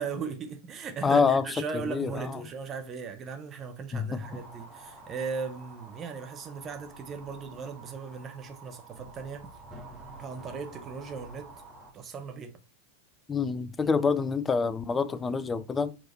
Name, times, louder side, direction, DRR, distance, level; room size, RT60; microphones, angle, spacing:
voice 1, 0.0-9.5 10.2-11.5 11.9-12.6, right 5 dB, 25° right, 0.9 m, -38 dB
voice 2, 1.0-1.4 1.9-2.4 3.9-4.2 13.3-16.0, left 5 dB, 15° left, 0.5 m, -26 dB
sound 1, 4.2-11.9, right 2 dB, 10° right, 2.3 m, -48 dB
5.9 x 5.0 x 4.3 m
figure-of-eight pair, 90°, 0 cm